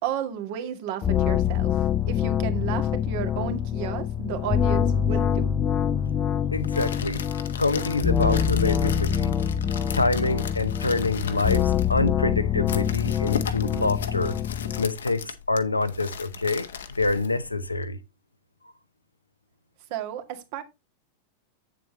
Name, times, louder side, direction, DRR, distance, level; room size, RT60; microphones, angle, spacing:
voice 1, 0.0-1.8 2.1-5.5 19.9-20.6, right 10 dB, 50° right, 1.9 m, -33 dB
sound 1, 1.0-14.9, left 9 dB, 25° left, 0.5 m, -25 dB
voice 2, 6.5-7.2 7.6-9.3 9.9-14.4 14.8-18.0, left 3 dB, 80° left, 0.9 m, -26 dB
sound 2, 6.5-17.9, left 7 dB, 65° left, 1.2 m, -38 dB
9.0 x 7.6 x 3.0 m
figure-of-eight pair, 90°, 0 cm